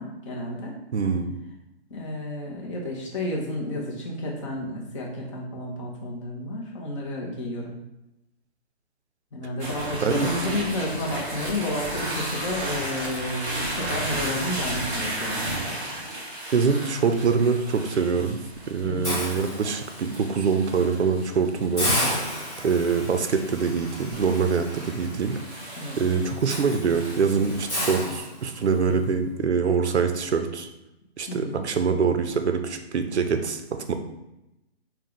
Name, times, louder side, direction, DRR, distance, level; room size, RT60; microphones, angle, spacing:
voice 1, 0.0-0.7 1.9-7.7 9.3-15.5 18.8-19.2 25.8-26.0 31.3-31.7, left 1 dB, 30° left, -3 dB, 0.8 m, -31 dB
voice 2, 0.9-1.3 10.0-10.6 16.5-22.0 22.6-25.4 26.0-30.7 31.2-33.9, right 5 dB, 80° right, 7 dB, 0.6 m, -24 dB
sound 1, 9.6-27.9, right 1 dB, 10° right, 0.6 m, -34 dB
Hiss, 19.0-20.2 20.6-20.8 21.2-21.3 21.8-28.8, equal, 10° left, 1.1 m, -32 dB
4.6 x 2.3 x 3.7 m, 0.91 s
figure-of-eight pair, 145°, 33 cm